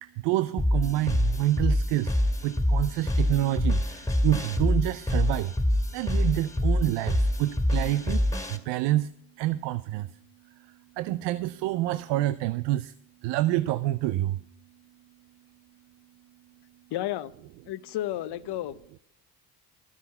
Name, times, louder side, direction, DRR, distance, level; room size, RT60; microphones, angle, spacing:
voice 1, 0.0-2.2 2.4-5.5 5.9-8.2 8.5-9.1 9.4-10.1 11.0-12.9 13.2-14.4, right 15 dB, 80° right, 0.6 m, -27 dB
sound 1, 0.6-8.6, left 1 dB, 10° left, 2.1 m, -26 dB
voice 2, 16.9-17.3 17.7-19.0, left 13 dB, 65° left, 0.8 m, -32 dB
12.5 x 9.7 x 5.6 m
hypercardioid pair, 55°, 42 cm